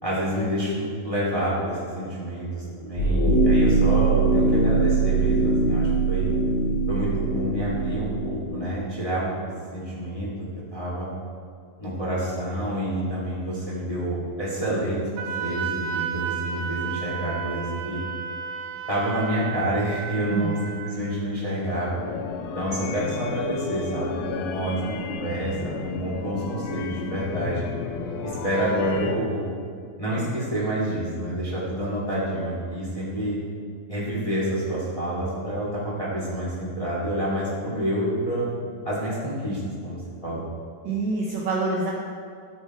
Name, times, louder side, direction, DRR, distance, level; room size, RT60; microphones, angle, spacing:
voice 1, 0.0-6.3 6.9-9.3 9.7-10.3 10.7-11.1 11.8-18.0 18.9-22.0 22.5-27.7 28.2-29.5 30.0-33.4 33.9-38.4 38.8-40.5, right 1 dB, 10° left, -7 dB, 2.2 m, -28 dB
sound 1, 3.0-8.4, right 3 dB, 55° left, 2.7 m, -21 dB
Wind instrument woodwind instrument, 15.2-20.9, right 7 dB, 85° right, 2.6 m, -32 dB
sound 2, 22.0-29.1, left 6 dB, 90° left, 2.5 m, -33 dB
voice 2, 40.8-41.9, right 3 dB, 65° right, -4 dB, 2.0 m, -26 dB
15.0 x 6.3 x 4.6 m, 2.2 s
omnidirectional pair, 4.3 m